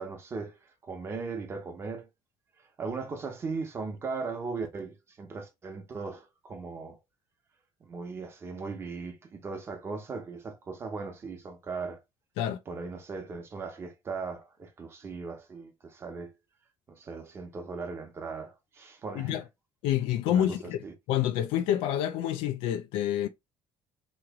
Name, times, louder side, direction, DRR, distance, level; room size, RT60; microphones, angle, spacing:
voice 1, 0.0-2.1 2.8-7.0 7.8-12.0 12.7-16.3 16.9-19.4 20.3-20.9, right 4 dB, 25° right, 0.9 m, -38 dB
voice 2, 19.8-20.8 21.1-23.3, left 11 dB, 90° left, 0.4 m, -28 dB
3.1 x 2.9 x 3.5 m
cardioid pair, 155°, 9 cm